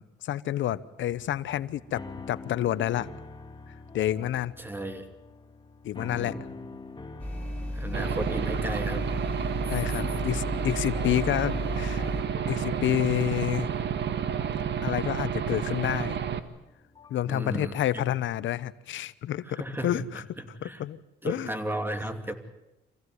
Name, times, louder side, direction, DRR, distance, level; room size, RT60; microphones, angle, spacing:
voice 1, 0.0-3.1 3.7-4.5 5.8-6.3 7.8-8.0 9.7-12.1 12.5-13.7 14.8-16.2 17.1-20.2 20.6-21.0 21.2-21.5, left 12 dB, 75° left, 17 dB, 0.9 m, -29 dB
sound 1, 1.1-17.3, left 3 dB, 25° left, 2.4 m, -45 dB
voice 2, 4.6-5.1 6.0-6.5 7.7-9.1 9.7-10.2 17.2-18.0 19.4-20.8 21.2-22.3, right 1 dB, 10° right, 8 dB, 2.7 m, -35 dB
sound 2, 7.2-12.2, left 1 dB, 5° left, 7.8 m, -34 dB
Aircraft / Engine, 7.9-16.4, right 8 dB, 60° right, 1.7 m, -30 dB
25.5 x 16.0 x 9.6 m, 0.91 s
cardioid pair, 90°, 20 cm